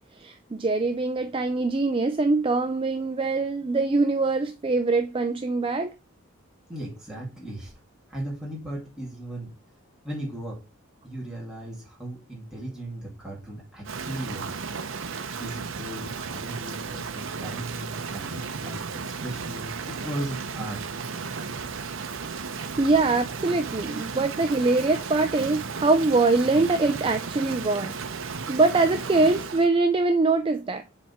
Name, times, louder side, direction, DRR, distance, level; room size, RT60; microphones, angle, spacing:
voice 1, 0.2-5.9 18.6-18.8 22.8-27.9 28.5-30.8, right 3 dB, 25° right, 0.3 m, -23 dB
voice 2, 6.7-7.7 8.1-9.5 10.0-10.6 11.0-14.6 15.3-20.8, right 1 dB, 5° right, 2.2 m, -37 dB
Rain, 13.9-29.7, right 5 dB, 65° right, 0.7 m, -34 dB
7.3 x 3.5 x 4.3 m
head